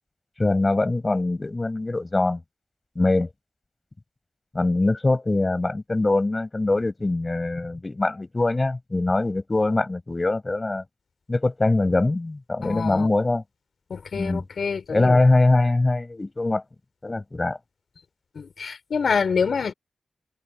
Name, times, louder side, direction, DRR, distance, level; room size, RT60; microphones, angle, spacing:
voice 1, 0.4-2.4 3.0-3.3 4.5-10.8 11.3-13.4 14.1-14.4 14.9-16.6 17.0-17.6, left 2 dB, 35° left, 6.1 m, -22 dB
voice 2, 12.6-13.1 13.9-15.2 18.4-19.7, left 5 dB, 75° left, 5.7 m, -26 dB
cardioid pair, 50°, 0 cm